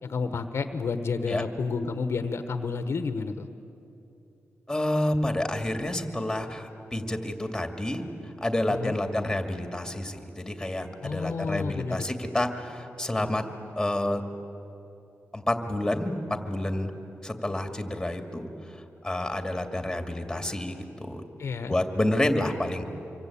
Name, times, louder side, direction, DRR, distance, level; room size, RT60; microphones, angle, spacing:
voice 1, 0.0-3.5 8.7-8.9 11.0-12.0 21.4-21.7, left 4 dB, 65° left, 9 dB, 1.2 m, -30 dB
voice 2, 4.7-13.4 13.8-14.2 15.3-16.2 16.5-16.9 17.2-21.2 21.7-22.8, left 1 dB, 10° left, 5 dB, 2.5 m, -29 dB
26.0 x 24.0 x 8.7 m, 2.8 s
wide cardioid pair, 95°, 5 cm